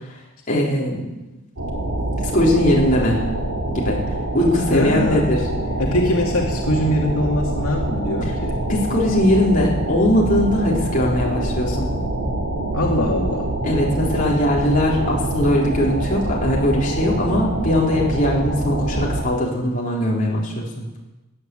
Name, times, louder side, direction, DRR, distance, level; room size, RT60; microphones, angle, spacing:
voice 1, 0.5-1.1 2.3-3.3 3.7-4.0 4.3-5.4 8.7-11.9 13.6-20.9, left 1 dB, 35° left, -4 dB, 4.0 m, -20 dB
sound 1, 1.6-19.2, right 1 dB, 70° right, 3.2 m, -25 dB
voice 2, 4.7-5.3 5.8-8.6 12.7-13.5, left 1 dB, 80° left, -1 dB, 2.3 m, -22 dB
14.5 x 9.8 x 8.6 m, 1.0 s
head